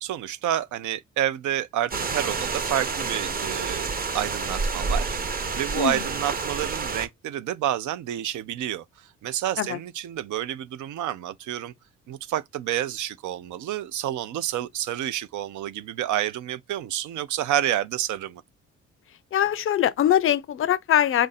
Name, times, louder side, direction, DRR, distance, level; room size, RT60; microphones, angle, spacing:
voice 1, 0.0-3.9 4.1-11.7 12.1-18.4, right 11 dB, 75° right, 0.5 m, -29 dB
sound 1, 1.9-7.1, right 4 dB, 30° right, 0.7 m, -29 dB
voice 2, 19.3-21.3, left 10 dB, 45° left, 0.4 m, -22 dB
3.7 x 2.6 x 4.0 m
cardioid pair, 90°, 30 cm